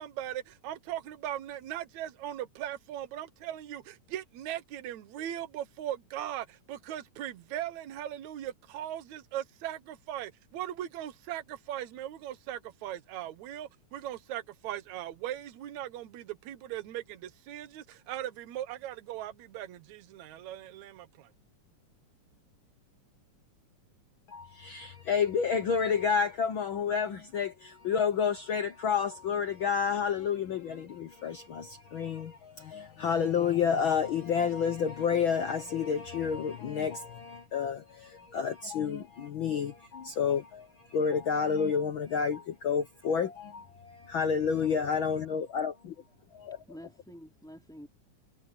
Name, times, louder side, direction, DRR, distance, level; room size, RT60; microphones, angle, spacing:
voice 1, 0.0-21.3, right 12 dB, 70° right, 2.5 m, -39 dB
voice 2, 24.3-45.9 46.3-46.6, left 6 dB, 65° left, 1.2 m, -30 dB
voice 3, 46.5-47.9, equal, ahead, 3.6 m, -49 dB
omnidirectional pair, 3.5 m